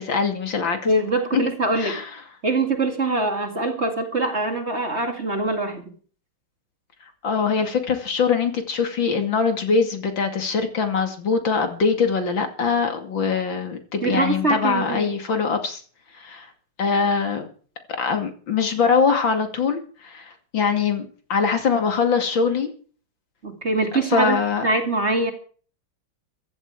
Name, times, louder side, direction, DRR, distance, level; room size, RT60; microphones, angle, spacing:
voice 1, 0.0-0.9 1.8-2.2 7.2-15.8 16.1-16.5 16.8-17.5 18.0-22.7 24.1-24.7, left 5 dB, 65° left, 6 dB, 3.2 m, -23 dB
voice 2, 0.9-2.0 2.4-5.9 14.0-15.1 23.4-24.4 24.6-25.3, right 2 dB, 30° right, 5 dB, 2.3 m, -23 dB
15.5 x 13.5 x 4.9 m, 0.42 s
omnidirectional pair, 2.3 m